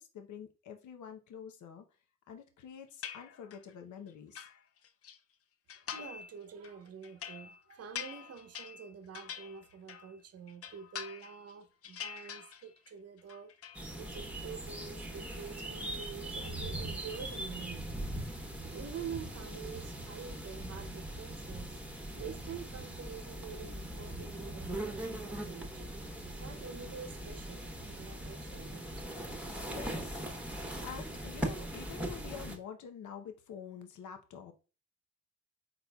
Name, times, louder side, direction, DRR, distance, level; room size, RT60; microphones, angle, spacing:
voice 1, 0.0-1.9 2.3-4.5 29.7-30.2 30.8-34.5, left 7 dB, 75° left, 0.8 m, -47 dB
sound 1, 3.0-3.7 4.1-5.2 5.7-6.3 6.6-10.2 10.5-11.5 11.8-12.9 13.2-13.8, left 8 dB, 50° left, 0.5 m, -45 dB
voice 2, 5.9-13.5 14.0-18.0 18.7-21.8 22.2-25.9 26.4-29.1, right 7 dB, 55° right, 0.7 m, -47 dB
sound 2, 13.7-32.6, right 1 dB, 5° right, 1.1 m, -40 dB
4.3 x 4.0 x 2.3 m
cardioid pair, 75°, 30 cm